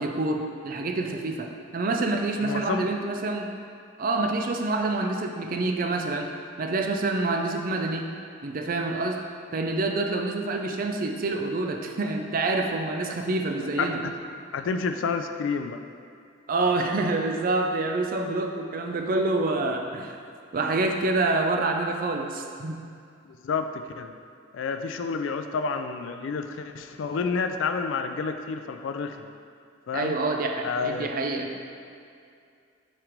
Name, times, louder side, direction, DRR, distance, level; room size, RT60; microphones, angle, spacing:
voice 1, 0.0-3.5 4.0-6.3 6.6-8.1 8.4-9.2 9.5-14.0 16.5-20.1 20.5-22.8 29.9-31.6, right 2 dB, 45° right, 3 dB, 0.4 m, -27 dB
voice 2, 2.4-2.9 13.8-14.1 14.5-15.8 23.3-24.1 24.5-29.3 29.9-30.2 30.6-31.1, left 5 dB, 75° left, 7 dB, 0.4 m, -29 dB
5.9 x 3.2 x 5.1 m, 2.4 s
head